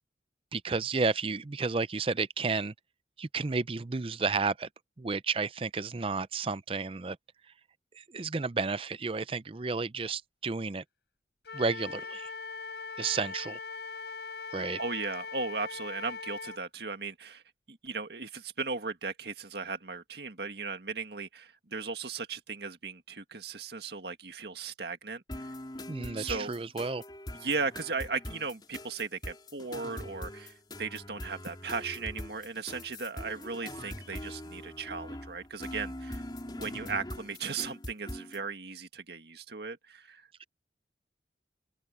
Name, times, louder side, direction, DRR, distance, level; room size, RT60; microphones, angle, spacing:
voice 1, 0.5-2.7 3.2-4.7 5.0-7.2 7.9-10.8 11.5-12.3 13.0-13.6 14.5-14.8 25.9-27.0 40.4-40.5, right 4 dB, 30° right, 0.5 m, -32 dB
Wind instrument woodwind instrument, 11.4-16.6, left 4 dB, 70° left, 4.0 m, -41 dB
voice 2, 14.8-17.4 17.7-25.2 26.2-26.5 27.4-36.2 36.5-40.3, right 4 dB, 65° right, 1.9 m, -37 dB
sound 1, 25.3-38.4, left 1 dB, 25° left, 4.3 m, -42 dB
open air
head